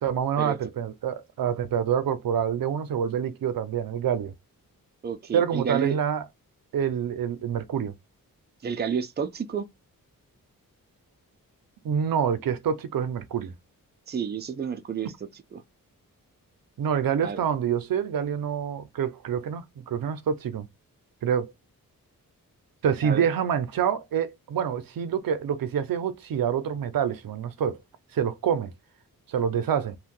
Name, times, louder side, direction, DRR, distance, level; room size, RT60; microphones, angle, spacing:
voice 1, 0.0-4.3 5.3-6.2 6.7-7.9 11.8-13.5 16.8-20.7 21.2-21.5 22.8-27.8 28.1-28.7 29.3-30.0, right 8 dB, 75° right, 0.6 m, -27 dB
voice 2, 5.0-6.0 8.6-9.7 14.1-15.6 17.2-17.4 23.0-23.3, right 6 dB, 30° right, 0.5 m, -30 dB
2.6 x 2.3 x 3.6 m
cardioid pair, 80°, 35 cm